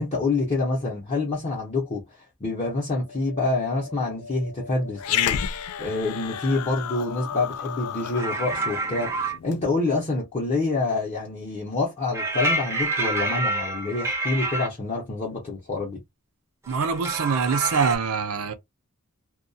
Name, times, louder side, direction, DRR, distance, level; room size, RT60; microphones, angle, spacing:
voice 1, 0.0-16.0, left 3 dB, 30° left, 0.7 m, -27 dB
sound 1, 2.9-8.3, left 3 dB, 70° left, 0.7 m, -44 dB
Growling, 5.0-9.6, left 9 dB, 85° left, 0.3 m, -31 dB
sound 2, 8.2-9.4 12.1-14.7 16.7-18.0, right 2 dB, 15° right, 0.5 m, -27 dB
voice 2, 16.7-18.5, right 5 dB, 70° right, 0.5 m, -24 dB
2.2 x 2.2 x 2.6 m
head